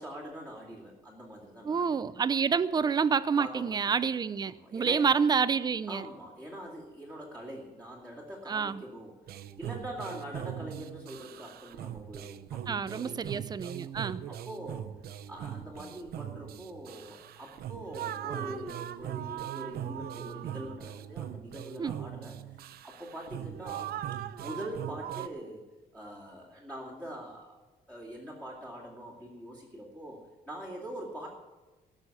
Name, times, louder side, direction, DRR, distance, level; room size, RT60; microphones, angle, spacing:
voice 1, 0.0-2.0 3.4-3.9 4.5-5.1 5.9-9.2 9.6-13.3 14.2-14.9 15.3-23.9 24.4-25.6 25.9-27.6 27.9-31.3, right 1 dB, 10° left, -5 dB, 2.4 m, -43 dB
voice 2, 1.6-6.0 8.5-8.8 12.7-14.2 21.8-22.0, right 6 dB, 25° right, 16 dB, 0.4 m, -28 dB
sound 1, 9.3-25.3, right 11 dB, 65° right, 0.6 m, -40 dB
19.0 x 6.3 x 8.4 m, 1.2 s
cardioid pair, 175°, 17 cm